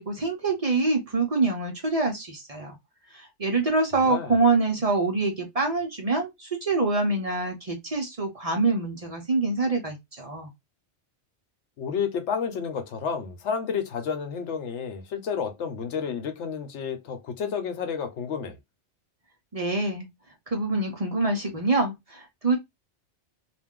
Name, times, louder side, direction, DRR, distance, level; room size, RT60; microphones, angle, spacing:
voice 1, 0.0-2.8 3.1-10.5 19.5-20.1 20.5-22.6, right 3 dB, 40° right, 0.6 m, -25 dB
voice 2, 4.0-4.4 11.8-18.6, left 6 dB, 85° left, 1.0 m, -30 dB
2.5 x 2.2 x 3.5 m
omnidirectional pair, 1.2 m